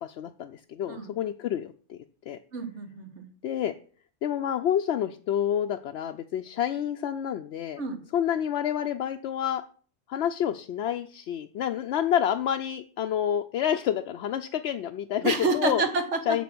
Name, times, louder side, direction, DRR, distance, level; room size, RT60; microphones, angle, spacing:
voice 1, 0.0-2.0 2.3-2.4 3.4-3.7 4.2-7.8 8.1-9.6 10.1-15.8 16.3-16.4, left 10 dB, 65° left, 5 dB, 0.8 m, -28 dB
voice 2, 2.5-3.3 7.8-8.0 15.2-16.4, right 3 dB, 65° right, 6 dB, 1.8 m, -28 dB
8.4 x 6.2 x 6.0 m, 0.43 s
omnidirectional pair, 1.3 m